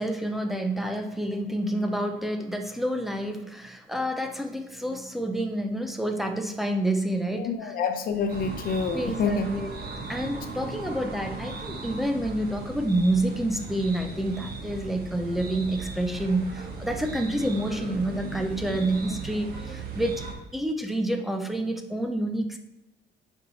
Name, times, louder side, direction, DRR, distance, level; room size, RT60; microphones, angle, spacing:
voice 1, 0.0-7.7 8.9-9.7 10.1-20.2 20.5-22.6, right 1 dB, ahead, 5 dB, 0.6 m, -28 dB
voice 2, 7.3-9.5, left 5 dB, 55° left, 6 dB, 0.9 m, -27 dB
sound 1, 8.3-20.3, right 4 dB, 60° right, 1.3 m, -37 dB
10.0 x 4.7 x 4.0 m, 0.93 s
cardioid pair, 180°, 18 cm